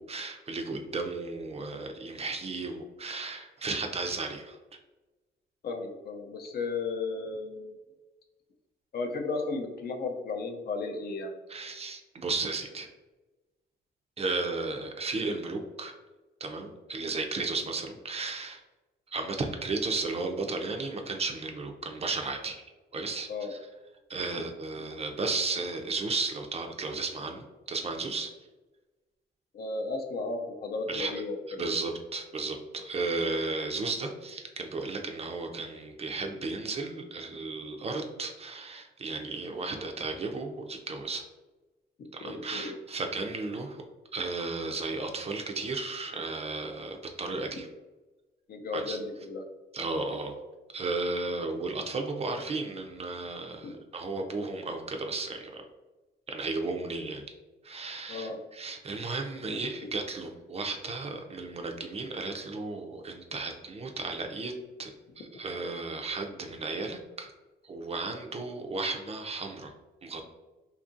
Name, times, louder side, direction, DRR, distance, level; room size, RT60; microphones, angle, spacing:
voice 1, 0.0-4.6 11.5-12.9 14.2-15.9 16.4-18.6 19.1-22.6 22.9-23.6 24.1-28.3 30.9-31.1 31.6-41.2 42.1-43.8 44.1-47.7 48.7-49.0 49.7-50.3 50.7-55.7 56.3-57.2 57.6-64.5 64.8-64.9 65.2-67.3 67.6-69.7 70.0-70.2, right 3 dB, 30° right, 4 dB, 0.4 m, -34 dB
voice 2, 5.6-7.7 8.9-11.3 23.3-23.5 29.5-31.8 42.0-42.7 48.5-49.4 58.1-58.4, left 3 dB, 50° left, 4 dB, 0.5 m, -34 dB
2.8 x 2.4 x 2.6 m, 1.2 s
cardioid pair, 90°, 20 cm